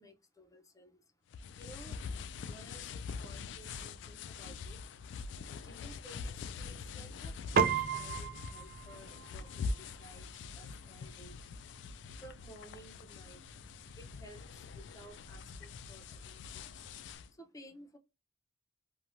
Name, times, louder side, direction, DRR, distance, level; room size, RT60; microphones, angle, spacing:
voice 1, 0.0-2.0 2.5-7.4 7.7-18.0, equal, 20° left, 0.6 m, -56 dB
sound 1, 1.3-17.3, left 5 dB, 75° left, 0.3 m, -44 dB
Piano, 7.6-17.2, right 6 dB, 55° right, 0.4 m, -39 dB
3.0 x 2.3 x 2.5 m
head